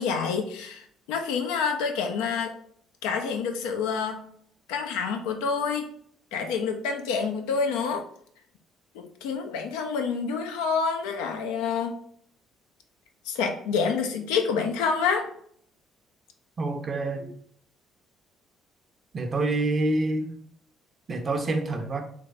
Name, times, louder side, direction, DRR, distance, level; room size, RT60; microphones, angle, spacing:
voice 1, 0.0-2.5 3.0-4.2 4.7-5.9 6.3-8.0 8.9-12.0 13.3-15.3, left 5 dB, 70° left, 4 dB, 0.5 m, -28 dB
voice 2, 16.6-17.3 19.1-20.3 21.1-22.0, right 2 dB, 40° right, 5 dB, 0.6 m, -27 dB
3.3 x 3.1 x 2.5 m, 0.64 s
hypercardioid pair, 50°, 0 cm